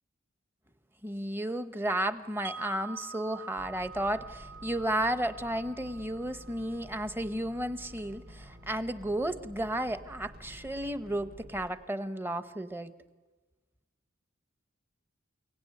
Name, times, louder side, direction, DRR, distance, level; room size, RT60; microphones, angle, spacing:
voice 1, 1.0-12.9, right 1 dB, 10° right, 11 dB, 0.9 m, -33 dB
Wind chime, 2.4-8.4, right 6 dB, 85° right, 3.2 m, -47 dB
sound 1, 3.6-11.7, equal, 50° right, 6.0 m, -50 dB
30.0 x 17.5 x 9.7 m, 1.3 s
head